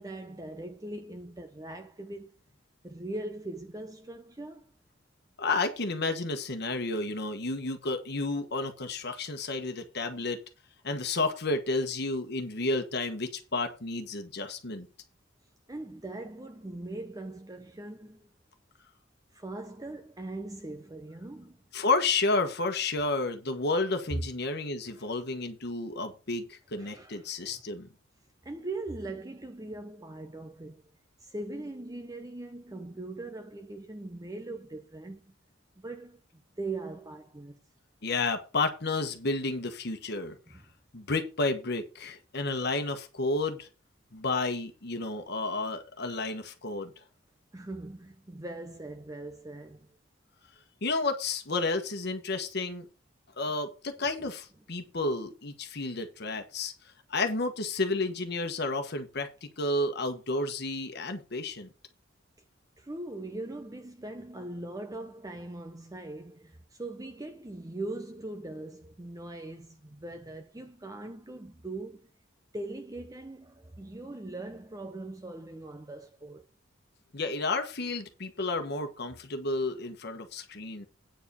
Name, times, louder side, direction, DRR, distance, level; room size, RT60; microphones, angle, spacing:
voice 1, 0.0-2.4 2.8-4.7 15.7-18.3 19.3-21.6 24.9-25.1 26.8-27.6 28.4-30.8 31.2-35.3 35.8-37.6 40.5-40.6 47.5-49.9 54.0-54.1 62.8-72.1 72.5-76.4, right 2 dB, 20° right, 0.7 m, -41 dB
voice 2, 5.4-10.4 10.8-14.9 21.7-27.9 38.0-40.6 40.9-43.7 44.1-46.9 50.8-52.8 53.4-56.7 57.1-61.7 77.1-80.9, left 3 dB, 55° left, 1.3 m, -31 dB
8.9 x 5.0 x 6.7 m
head